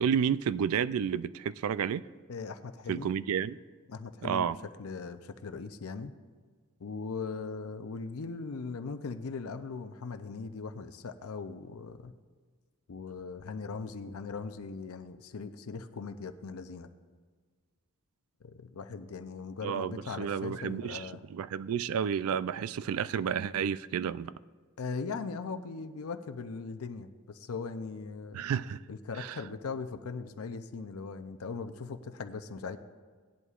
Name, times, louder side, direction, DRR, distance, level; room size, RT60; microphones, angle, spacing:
voice 1, 0.0-2.0 2.9-3.6 4.2-4.6 19.6-24.3 28.3-28.8 29.2-29.4, right 7 dB, 70° right, 0.3 m, -31 dB
voice 2, 2.3-3.1 3.9-4.5 4.8-6.1 6.8-12.1 12.9-16.9 18.4-21.2 24.8-28.4 28.9-32.8, left 4 dB, 70° left, 0.6 m, -39 dB
18.0 x 11.0 x 2.4 m
head